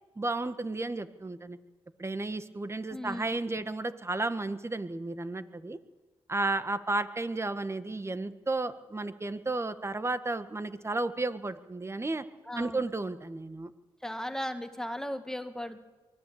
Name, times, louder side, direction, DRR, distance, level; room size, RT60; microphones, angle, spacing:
voice 1, 0.1-1.6 2.0-5.8 6.3-12.2 12.5-13.7, right 2 dB, 25° right, 11 dB, 1.6 m, -33 dB
voice 2, 2.9-3.2 3.5-3.6 12.5-12.8 14.0-15.8, equal, 5° left, 7 dB, 2.2 m, -36 dB
23.5 x 18.5 x 8.6 m, 1.2 s
cardioid pair, 65°, 11 cm